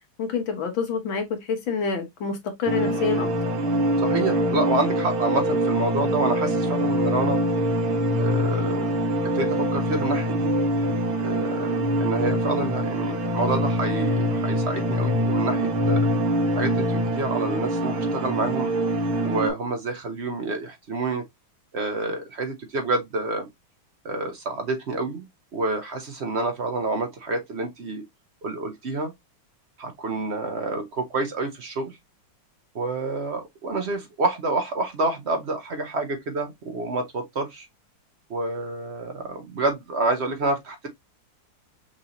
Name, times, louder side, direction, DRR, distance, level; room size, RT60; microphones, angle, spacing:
voice 1, 0.2-3.3, left 5 dB, 70° left, 1.9 m, -27 dB
sound 1, 2.7-19.5, equal, 85° right, 2.2 m, -24 dB
voice 2, 4.0-7.4 8.2-9.0 9.3-10.5 11.2-16.1 16.5-18.7 19.2-21.2 21.7-23.5 24.0-25.3 25.5-28.0 28.4-29.1 29.8-32.0 32.7-37.7 38.3-40.9, right 3 dB, 55° right, 0.7 m, -28 dB
5.9 x 2.8 x 2.8 m
omnidirectional pair, 2.3 m